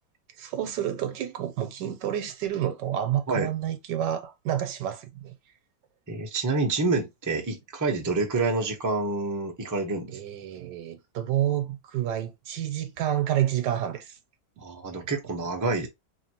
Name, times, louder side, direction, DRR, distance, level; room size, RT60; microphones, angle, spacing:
voice 1, 0.4-5.3 10.1-14.2, right 11 dB, 75° right, 1.3 m, -29 dB
voice 2, 6.1-10.2 14.6-15.9, right 3 dB, 15° right, 0.6 m, -27 dB
4.4 x 3.2 x 2.8 m
omnidirectional pair, 2.0 m